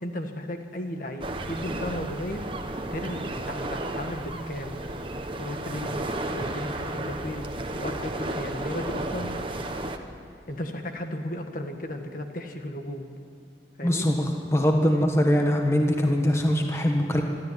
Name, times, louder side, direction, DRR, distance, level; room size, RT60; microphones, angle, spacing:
voice 1, 0.0-2.4 2.9-4.8 5.4-7.5 7.8-9.3 10.5-13.1 13.8-14.1, left 1 dB, 45° left, 5 dB, 1.7 m, -35 dB
sound 1, 1.2-10.0, right 2 dB, 30° right, 1.1 m, -33 dB
voice 2, 13.8-14.2 14.5-17.2, equal, 15° left, 2 dB, 1.4 m, -22 dB
24.5 x 13.0 x 9.5 m, 2.4 s
head